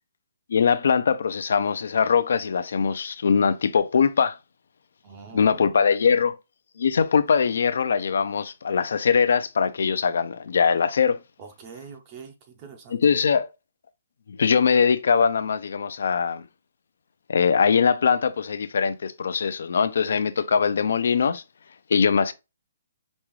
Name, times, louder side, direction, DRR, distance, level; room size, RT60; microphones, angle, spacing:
voice 1, 0.5-4.4 5.3-6.4 6.8-11.2 12.9-13.5 14.3-16.4 17.3-21.4 21.9-22.3, left 6 dB, 65° left, 0.5 m, -22 dB
voice 2, 5.0-5.8 11.4-12.3 12.6-13.0, right 6 dB, 25° right, 0.6 m, -43 dB
5.3 x 2.4 x 3.1 m
hypercardioid pair, 170°, 0 cm